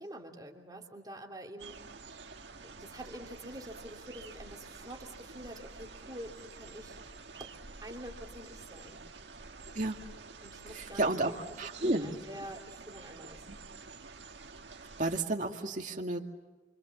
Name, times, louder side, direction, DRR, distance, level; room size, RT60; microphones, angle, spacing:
voice 1, 0.0-1.8 2.6-7.0 7.3-7.5 7.8-9.0 10.4-11.4 11.8-13.5, equal, 20° right, 1 dB, 3.0 m, -46 dB
sound 1, 1.6-15.2, right 4 dB, 80° right, 1.8 m, -49 dB
voice 2, 10.7-11.3 11.6-12.1 14.8-16.2, right 2 dB, 45° right, 2 dB, 2.3 m, -31 dB
28.5 x 26.0 x 7.3 m, 1.2 s
head